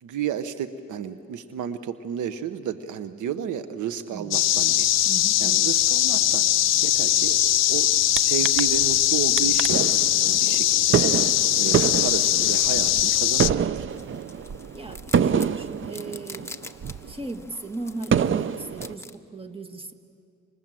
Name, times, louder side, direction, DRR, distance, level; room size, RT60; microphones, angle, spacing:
voice 1, 0.0-4.9 5.4-6.5 6.8-11.0 11.6-13.9, right 9 dB, 80° right, 11 dB, 1.1 m, -32 dB
sound 1, 4.3-13.5, left 13 dB, 60° left, 0.6 m, -21 dB
voice 2, 5.1-5.7 7.1-7.3 14.7-16.6 17.1-19.9, right 2 dB, 20° right, 6 dB, 1.8 m, -37 dB
sound 2, 8.2-8.3 8.4-9.0 9.4-17.2 17.6-17.7 18.1-18.9, right 7 dB, 40° right, 0.6 m, -26 dB
sound 3, 13.9-19.1, left 2 dB, 10° left, 1.1 m, -45 dB
29.5 x 26.0 x 7.7 m, 2.6 s
cardioid pair, 90°, 30 cm